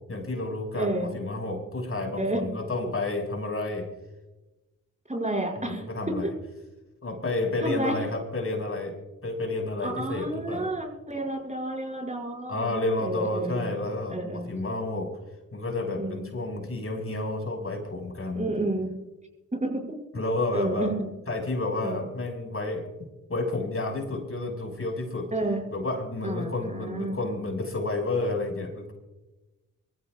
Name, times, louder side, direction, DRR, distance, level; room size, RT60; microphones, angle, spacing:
voice 1, 0.1-3.8 5.6-6.3 7.0-8.9 9.2-10.7 12.5-15.1 15.5-18.5 20.1-20.9 21.3-22.8 23.3-25.3 25.7-28.9, left 2 dB, 40° left, 2 dB, 5.9 m, -30 dB
voice 2, 0.7-1.1 2.2-2.4 5.1-6.3 7.6-8.0 9.8-14.5 16.0-16.3 18.3-18.9 19.6-19.8 20.5-20.9 21.8-22.1 25.3-25.6 26.2-27.2, right 1 dB, 20° right, 1 dB, 6.4 m, -30 dB
24.5 x 15.0 x 2.5 m, 1.0 s
cardioid pair, 65°, 35 cm